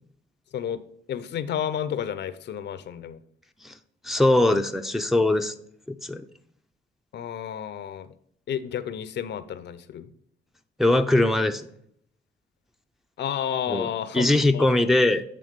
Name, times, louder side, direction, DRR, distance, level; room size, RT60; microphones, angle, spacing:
voice 1, 1.1-3.2 7.1-8.1 8.5-10.1 13.2-14.3 14.5-14.7, left 9 dB, 60° left, 13 dB, 0.6 m, -31 dB
voice 2, 4.0-5.5 5.9-6.3 10.8-11.6 13.7-13.9 14.1-15.2, left 2 dB, ahead, 6 dB, 0.5 m, -21 dB
8.6 x 3.5 x 5.1 m, 0.67 s
cardioid pair, 90°, 20 cm